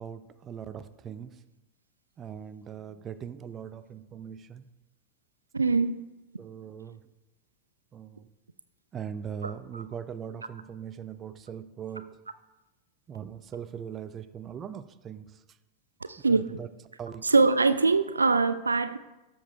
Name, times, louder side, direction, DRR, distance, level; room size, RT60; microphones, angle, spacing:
voice 1, 0.0-1.4 2.2-4.6 6.4-7.0 7.9-8.3 8.9-12.1 13.1-15.3 16.3-16.7 17.0-17.2, right 8 dB, 25° right, 0.5 m, -40 dB
voice 2, 5.5-6.0 9.4-9.8 12.0-12.1 16.0-16.4 17.2-19.0, right 4 dB, 80° right, 0.4 m, -23 dB
13.0 x 7.1 x 3.4 m
figure-of-eight pair, 90°, 0 cm